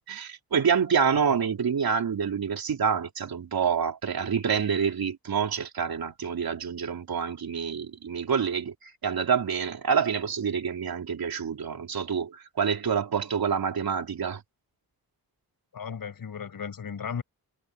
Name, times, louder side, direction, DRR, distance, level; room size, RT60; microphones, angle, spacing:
voice 1, 0.1-14.4, right 6 dB, 65° right, 3.8 m, -27 dB
voice 2, 15.7-17.2, left 7 dB, 60° left, 7.5 m, -35 dB
wide cardioid pair, 155°, 39 cm